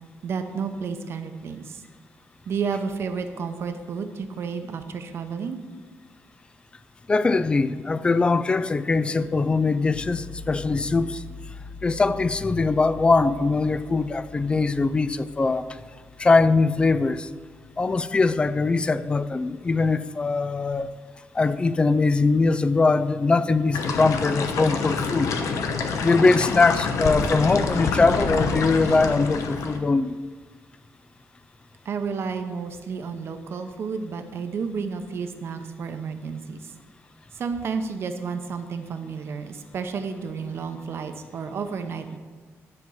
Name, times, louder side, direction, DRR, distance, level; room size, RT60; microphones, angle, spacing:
voice 1, 0.2-1.8 2.5-5.6 31.8-36.7 37.3-42.2, right 5 dB, 50° right, 7 dB, 0.8 m, -31 dB
voice 2, 7.1-11.2 11.8-15.8 16.2-17.3 17.8-20.9 21.3-25.4 26.0-30.2, left 3 dB, 20° left, 14 dB, 0.3 m, -21 dB
sound 1, 9.9-19.8, left 4 dB, 20° right, 0.8 m, -44 dB
sound 2, 23.7-29.8, left 4 dB, 80° left, 0.9 m, -27 dB
11.0 x 4.5 x 7.2 m, 1.5 s
wide cardioid pair, 165°, 5 cm